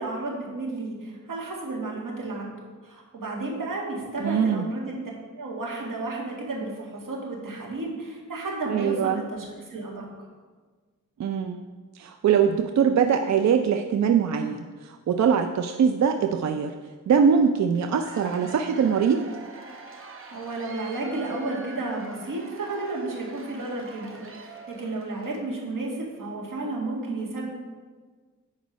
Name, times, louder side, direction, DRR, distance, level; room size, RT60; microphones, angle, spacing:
voice 1, 0.0-2.6 2.8-5.0 5.4-10.1 20.3-27.5, right 2 dB, 85° right, -3 dB, 1.9 m, -32 dB
voice 2, 4.2-4.7 8.7-9.2 11.2-11.6 12.0-16.7 17.1-19.2, right 7 dB, 60° right, 6 dB, 0.4 m, -22 dB
Cheering / Applause / Crowd, 17.7-25.4, right 4 dB, 40° right, 0.9 m, -44 dB
8.3 x 5.2 x 5.1 m, 1.5 s
wide cardioid pair, 125°, 32 cm